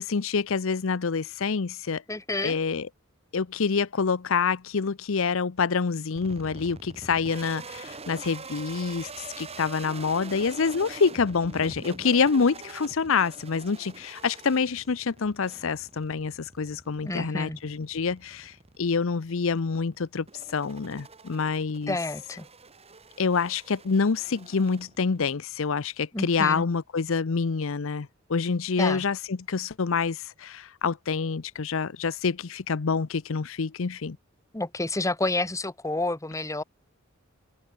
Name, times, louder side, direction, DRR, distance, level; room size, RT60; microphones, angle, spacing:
voice 1, 0.0-2.0 2.4-2.9 3.3-22.0 23.2-34.2, left 5 dB, 70° left, 0.7 m, -27 dB
voice 2, 2.1-2.6 17.0-17.6 21.9-22.4 26.1-26.6 28.8-29.0 34.5-36.6, left 2 dB, 15° left, 1.4 m, -29 dB
sound 1, 6.2-25.4, right 3 dB, 30° right, 2.9 m, -45 dB
head